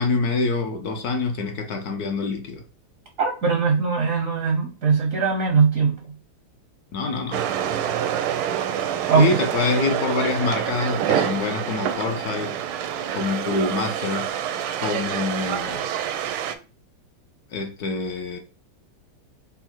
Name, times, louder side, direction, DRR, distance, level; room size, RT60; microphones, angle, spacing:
voice 1, 0.0-2.6 6.9-7.4 9.1-12.5 13.1-14.3 14.8-15.9 17.5-18.4, left 4 dB, 70° left, 0.9 m, -26 dB
voice 2, 3.2-6.1 9.1-9.4, right 5 dB, 65° right, 0.8 m, -20 dB
sound 1, 7.3-16.6, right 9 dB, 80° right, 1.4 m, -27 dB
5.6 x 2.0 x 4.4 m
omnidirectional pair, 2.3 m